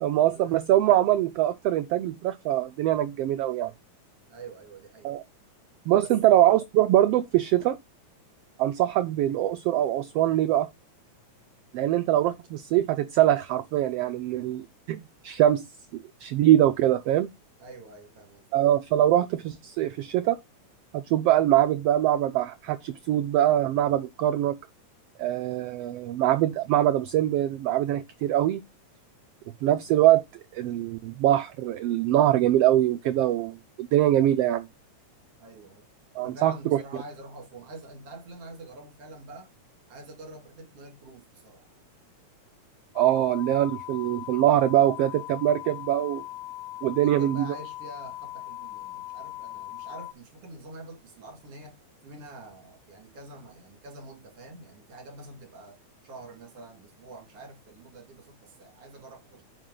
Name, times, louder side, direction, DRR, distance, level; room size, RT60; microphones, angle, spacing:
voice 1, 0.0-3.7 5.0-5.2 5.9-7.8 8.6-10.7 11.7-15.6 15.9-17.3 18.5-20.4 20.9-24.6 25.2-28.6 29.6-30.2 30.5-34.7 36.1-36.8 42.9-46.2 46.8-47.5, right 13 dB, 90° right, 1.3 m, -23 dB
voice 2, 4.3-5.1 17.6-18.4 35.4-35.8 36.2-39.5 39.9-41.7 47.0-51.8 52.0-59.4, right 2 dB, 55° right, 3.2 m, -46 dB
sound 1, 43.0-50.1, left 15 dB, 80° left, 1.8 m, -40 dB
9.2 x 5.4 x 3.8 m
omnidirectional pair, 3.3 m